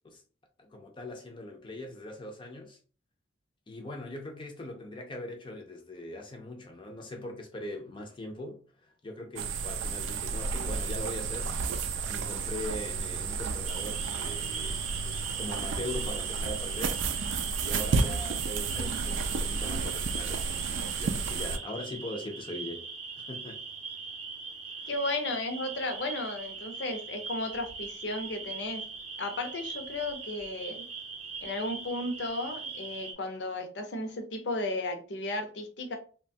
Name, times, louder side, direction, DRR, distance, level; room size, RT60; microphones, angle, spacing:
voice 1, 0.6-2.8 3.7-22.9 23.2-23.6 24.8-24.9, left 1 dB, 25° left, 0.4 m, -41 dB
sound 1, 9.4-21.6, right 5 dB, 90° right, 0.4 m, -32 dB
sound 2, 13.7-33.1, right 4 dB, 35° right, 0.6 m, -41 dB
voice 2, 24.9-28.8 29.2-30.9 31.4-36.0, left 2 dB, 70° left, 0.6 m, -34 dB
3.0 x 2.2 x 2.6 m
head